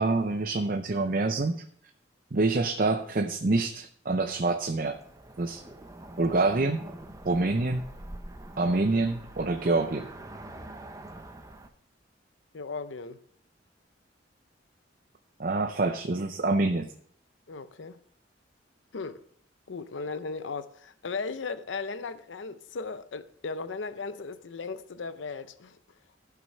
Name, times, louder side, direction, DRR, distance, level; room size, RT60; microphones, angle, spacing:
voice 1, 0.0-1.6 2.3-5.0 5.4-5.6 6.2-6.8 7.3-7.8 8.6-10.1 15.4-16.9, right 3 dB, 50° right, 0.6 m, -26 dB
Cricket / Motor vehicle (road), 4.8-11.7, right 1 dB, 20° right, 0.8 m, -45 dB
voice 2, 12.5-13.2 17.5-18.0 18.9-19.2 19.7-25.8, left 4 dB, 80° left, 0.6 m, -36 dB
14.5 x 6.0 x 5.4 m
head